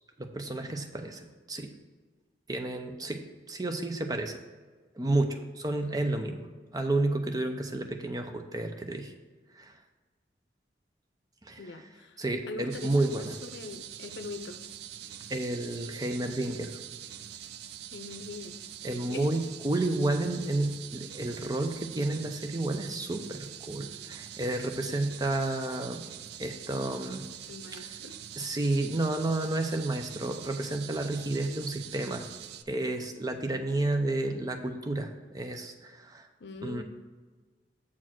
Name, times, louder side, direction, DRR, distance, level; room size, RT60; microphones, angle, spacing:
voice 1, 0.2-1.7 2.5-4.4 5.0-6.5 6.7-9.1 9.6-9.7 11.5-11.6 12.2-13.3 15.3-16.8 18.8-26.0 26.4-27.3 28.4-32.2 32.7-36.3 36.6-36.8, right 2 dB, 20° right, 5 dB, 0.6 m, -31 dB
voice 2, 11.6-14.6 17.9-18.5 18.8-19.3 27.5-28.2 36.4-36.8, left 3 dB, 75° left, 8 dB, 0.6 m, -42 dB
sound 1, 12.7-32.6, right 10 dB, 65° right, 0.4 m, -44 dB
7.3 x 4.5 x 6.0 m, 1.4 s
head